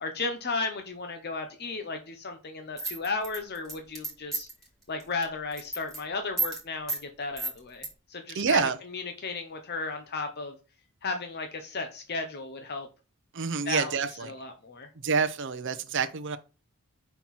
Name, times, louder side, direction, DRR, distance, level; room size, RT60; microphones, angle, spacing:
voice 1, 0.0-4.5 4.9-10.6 11.0-12.9 13.6-14.0 14.3-14.9, left 3 dB, 45° left, 0.8 m, -34 dB
sound 1, 2.8-4.6 5.0-5.2 5.5-6.0 6.4-6.6 6.9-7.0 7.4-7.9, right 3 dB, ahead, 2.8 m, -32 dB
voice 2, 8.3-8.8 13.3-14.3 15.0-16.4, right 5 dB, 55° right, 0.7 m, -27 dB
5.8 x 4.5 x 4.0 m
head